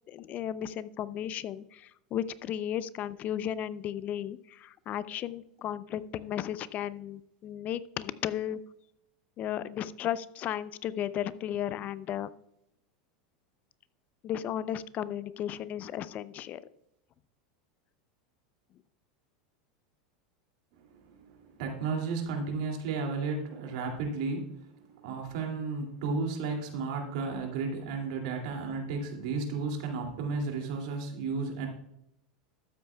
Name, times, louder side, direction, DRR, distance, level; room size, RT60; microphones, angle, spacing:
voice 1, 0.1-8.6 9.4-12.3 14.2-16.6, left 10 dB, 40° left, 16 dB, 0.5 m, -35 dB
voice 2, 20.8-31.7, right 4 dB, 65° right, 2 dB, 2.5 m, -33 dB
12.5 x 8.6 x 2.3 m, 0.80 s
hypercardioid pair, 90°, 4 cm